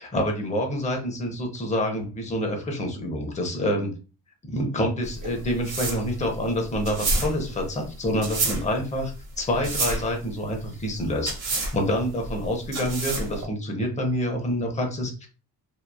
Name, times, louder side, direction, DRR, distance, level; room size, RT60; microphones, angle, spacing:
voice 1, 0.0-3.9 4.4-15.3, equal, 20° left, 2 dB, 0.5 m, -27 dB
sound 1, 5.0-13.4, right 2 dB, 50° right, 0.9 m, -30 dB
2.8 x 2.3 x 2.2 m, 0.35 s
cardioid pair, 165°, 40 cm